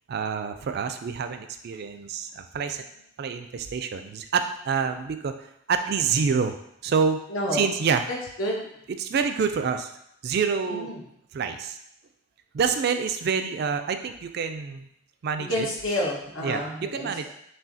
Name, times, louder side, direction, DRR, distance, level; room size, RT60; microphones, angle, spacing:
voice 1, 0.1-2.8 3.2-5.3 5.7-6.6 6.8-7.2 7.5-8.0 9.0-9.9 10.2-10.9 11.3-11.8 12.5-14.9 15.2-15.7 16.4-16.6 16.9-17.3, right 6 dB, 50° right, 8 dB, 0.3 m, -27 dB
voice 2, 7.3-7.8 8.1-8.7 10.7-11.0 15.5-17.3, left 1 dB, 85° left, -3 dB, 1.1 m, -30 dB
5.5 x 2.7 x 2.7 m, 0.75 s
head